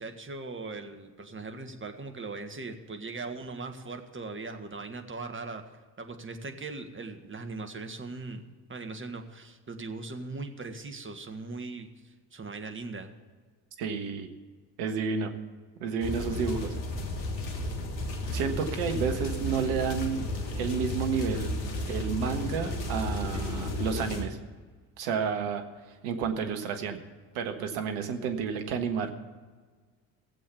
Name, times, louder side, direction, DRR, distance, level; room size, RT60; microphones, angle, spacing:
voice 1, 0.0-5.6 6.0-8.4 8.7-13.1, right 3 dB, 25° right, 6 dB, 1.8 m, -39 dB
voice 2, 13.8-14.3 14.8-15.3 15.8-16.8 18.3-20.3 20.5-21.5 21.9-24.4 25.0-25.6 26.0-27.0 27.3-29.1, right 6 dB, 70° right, 6 dB, 1.5 m, -30 dB
sound 1, 16.0-24.2, left 2 dB, 90° left, 1.5 m, -33 dB
16.0 x 7.7 x 7.1 m, 1.4 s
hypercardioid pair, 55°, 50 cm